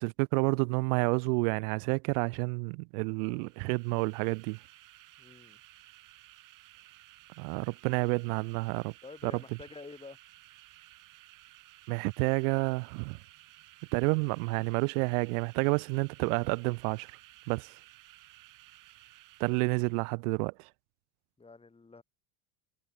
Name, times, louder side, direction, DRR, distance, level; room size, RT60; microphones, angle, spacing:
voice 1, 0.0-4.6 7.4-8.9 9.2-9.3 11.9-13.2 13.9-17.1 17.5-17.7 19.4-20.7, right 35 dB, 80° right, 0.7 m, -29 dB
sound 1, 3.3-20.1, right 16 dB, 45° right, 1.9 m, -56 dB
voice 2, 5.2-5.6 9.0-10.2 21.4-22.0, left 3 dB, 15° left, 7.9 m, -48 dB
cardioid pair, 140°, 42 cm